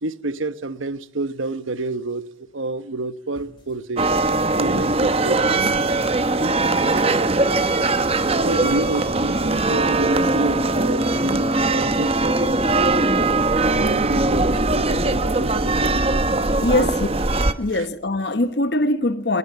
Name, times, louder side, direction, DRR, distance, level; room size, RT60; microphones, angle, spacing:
voice 1, 0.0-4.1 4.5-5.7 6.8-7.0 8.4-13.1 13.6-16.9 17.7-17.9, right 2 dB, 85° right, 1.1 m, -29 dB
sound 1, 3.4-14.0, left 1 dB, 25° left, 5.4 m, -48 dB
sound 2, 4.0-17.5, right 2 dB, 30° right, 1.0 m, -20 dB
voice 2, 16.6-17.1 17.6-19.4, left 2 dB, 55° left, 1.0 m, -22 dB
20.5 x 19.5 x 8.1 m
head